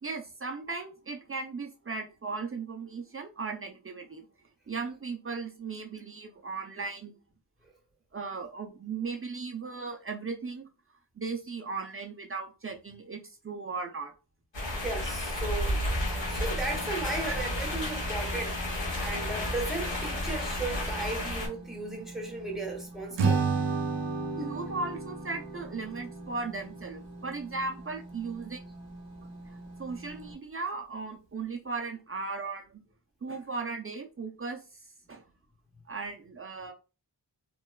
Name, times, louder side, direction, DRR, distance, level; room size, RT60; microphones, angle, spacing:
voice 1, 0.0-4.3 4.7-7.1 8.1-10.7 11.2-14.1 23.1-23.2 24.4-28.6 29.2-29.3 29.8-32.8 33.2-34.6 35.1-35.2 35.9-36.7, right 4 dB, 35° right, 0.4 m, -37 dB
sound 1, 14.5-21.5, left 1 dB, 85° left, 1.4 m, -32 dB
voice 2, 14.8-15.8 16.3-18.6 19.0-23.4, right 3 dB, ahead, 1.0 m, -36 dB
sound 2, 16.0-30.3, right 1 dB, 70° left, 1.2 m, -46 dB
Acoustic guitar / Strum, 23.2-26.5, right 4 dB, 80° right, 0.6 m, -30 dB
3.0 x 2.2 x 2.2 m
wide cardioid pair, 55°, 43 cm